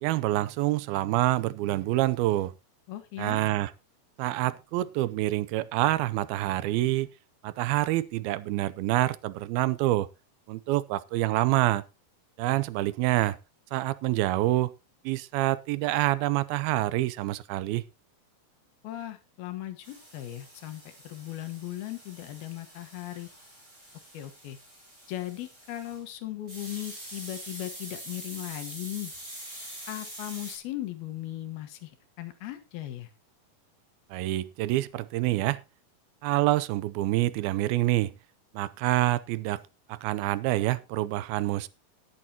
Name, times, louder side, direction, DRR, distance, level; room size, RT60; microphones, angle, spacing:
voice 1, 0.0-2.5 3.2-3.7 4.2-7.1 7.4-10.1 10.5-11.8 12.4-13.4 13.7-14.7 15.1-17.8 34.1-35.6 36.2-38.1 38.5-39.6 39.9-41.7, right 16 dB, 85° right, 2.6 m, -27 dB
voice 2, 2.9-3.4 18.8-23.3 24.1-24.6 25.1-29.1 29.9-31.9 32.2-33.1, left 14 dB, 90° left, 3.3 m, -38 dB
sound 1, 19.8-26.0 26.5-30.6, right 1 dB, 20° right, 7.5 m, -45 dB
18.5 x 8.7 x 2.9 m
omnidirectional pair, 4.2 m